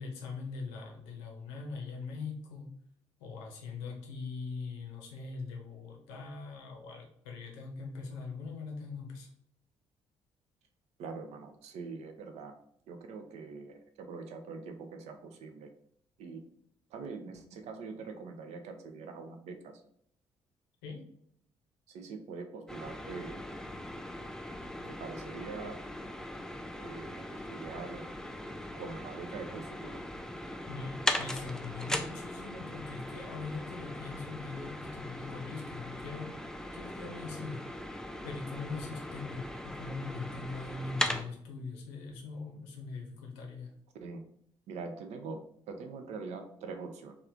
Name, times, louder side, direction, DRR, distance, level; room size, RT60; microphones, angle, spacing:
voice 1, 0.0-2.7 3.2-9.3 20.8-21.1 30.7-36.3 36.7-37.6 38.2-43.7, left 4 dB, 70° left, 1 dB, 0.7 m, -41 dB
voice 2, 11.0-12.5 12.9-15.7 16.2-16.4 16.9-19.8 21.9-23.4 25.0-25.8 26.8-28.1 28.8-30.0 44.0-44.2 44.7-45.4 45.7-47.1, right 4 dB, 55° right, 6 dB, 0.5 m, -43 dB
sound 1, 22.7-41.2, left 1 dB, 5° left, 0.4 m, -39 dB
3.2 x 2.4 x 3.6 m, 0.69 s
figure-of-eight pair, 40°, 13 cm